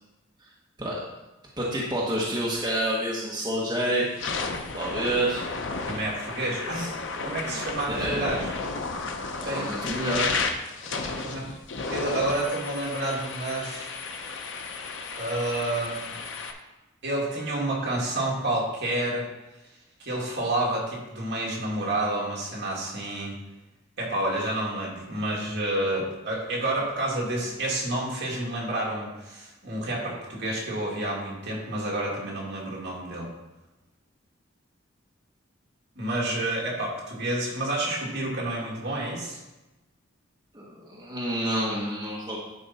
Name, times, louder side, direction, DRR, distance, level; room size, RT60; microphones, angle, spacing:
voice 1, 1.6-4.1 4.7-5.5 6.7-6.9 7.4-7.6 7.9-8.2 9.4-10.4 40.5-42.4, right 1 dB, 20° right, -5 dB, 1.2 m, -28 dB
sound 1, 3.3-3.6 4.0-16.5, left 4 dB, 60° left, 0.8 m, -33 dB
voice 2, 5.8-6.9 7.2-8.5 9.4-9.7 10.8-11.5 11.9-13.9 15.1-16.2 17.0-19.3 20.0-23.3 24.0-33.3 36.0-39.4, right 1 dB, 55° right, -3 dB, 2.2 m, -29 dB
10.5 x 4.7 x 4.2 m, 1.0 s
head